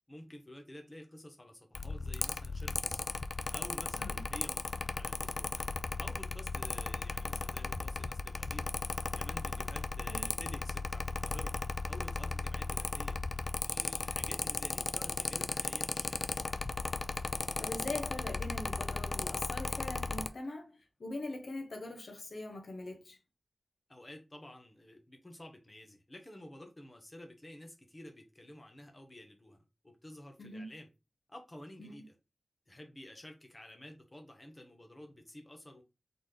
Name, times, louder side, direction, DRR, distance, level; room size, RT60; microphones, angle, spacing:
voice 1, 0.1-3.2 3.5-5.5 6.0-8.7 9.1-11.5 11.8-16.3 23.9-29.6 29.8-30.9 31.3-32.2 32.7-35.8, left 1 dB, 30° left, 1.1 m, -51 dB
Mechanical fan, 1.8-20.3, left 3 dB, 55° left, 0.3 m, -36 dB
voice 2, 17.6-23.2 30.4-30.7 31.8-32.0, left 2 dB, 80° left, 0.9 m, -42 dB
4.0 x 3.7 x 3.3 m
wide cardioid pair, 80°, 0 cm